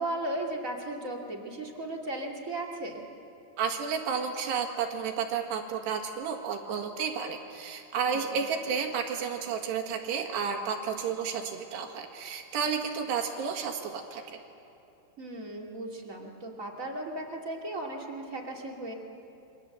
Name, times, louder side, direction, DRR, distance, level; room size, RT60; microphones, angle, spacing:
voice 1, 0.0-3.0 8.1-8.5 15.2-18.9, right 1 dB, 25° right, 0 dB, 2.0 m, -36 dB
voice 2, 3.6-14.4, right 6 dB, 75° right, 3 dB, 4.0 m, -32 dB
29.0 x 23.5 x 7.9 m, 2.8 s
omnidirectional pair, 4.9 m